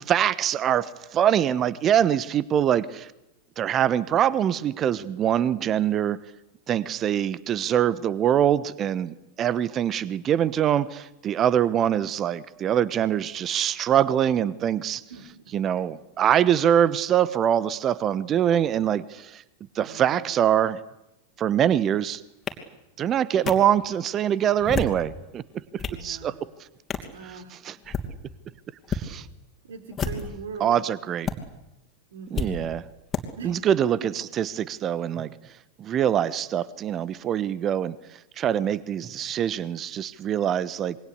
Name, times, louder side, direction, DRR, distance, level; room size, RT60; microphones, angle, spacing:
voice 1, 0.0-3.1 3.6-6.2 6.7-15.0 15.5-19.4 19.7-20.8 21.4-22.2 23.0-26.4 27.6-27.9 28.9-29.3 30.6-31.3 32.3-32.8 33.4-35.5 35.8-41.0, right 10 dB, 30° right, 19 dB, 1.1 m, -24 dB
voice 2, 19.8-20.3 25.8-26.4 27.1-27.6 29.6-30.8 32.1-32.6 33.4-33.6 34.0-34.1, right 4 dB, 65° right, 8 dB, 4.6 m, -40 dB
sound 1, 22.5-22.6 23.5-23.6 24.5-25.0 25.5-26.0 26.9-27.1 27.8-28.1 28.8-29.0 29.9-30.4 31.2-31.3 32.3-32.5 33.1-33.2, left 5 dB, 20° left, 2.9 m, -29 dB
26.5 x 23.0 x 8.3 m, 0.89 s
figure-of-eight pair, 90°, 0 cm